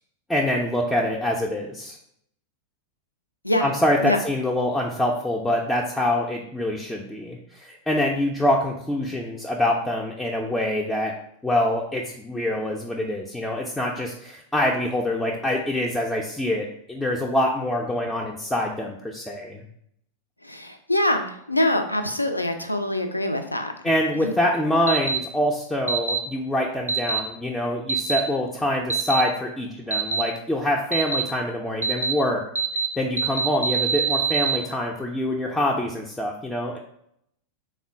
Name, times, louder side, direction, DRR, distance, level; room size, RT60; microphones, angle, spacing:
voice 1, 0.3-2.0 3.6-11.1 11.4-19.6 23.8-32.4 33.0-36.8, left 1 dB, 5° left, -2 dB, 0.4 m, -25 dB
voice 2, 20.4-23.7 24.2-24.3, left 1 dB, 85° left, 6 dB, 0.3 m, -24 dB
sound 1, 24.9-25.2 25.9-26.2 26.9-27.2 27.9-28.2 28.9-29.2 29.9-30.2 30.9-31.2 31.8-32.1 32.5-32.9 33.2-34.6, right 5 dB, 70° right, 0.3 m, -23 dB
3.6 x 2.1 x 3.5 m, 0.72 s
figure-of-eight pair, 90°, 0 cm